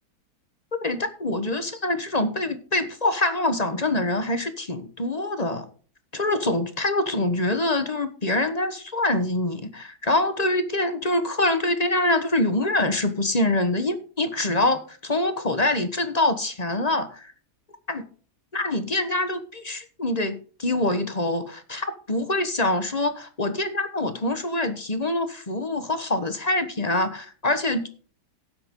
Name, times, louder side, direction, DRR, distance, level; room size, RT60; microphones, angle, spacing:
voice 1, 0.8-5.7 6.1-17.3 17.9-18.0 18.5-27.9, left 2 dB, 25° left, 9 dB, 1.2 m, -25 dB
12.5 x 9.5 x 3.8 m, 0.41 s
omnidirectional pair, 1.8 m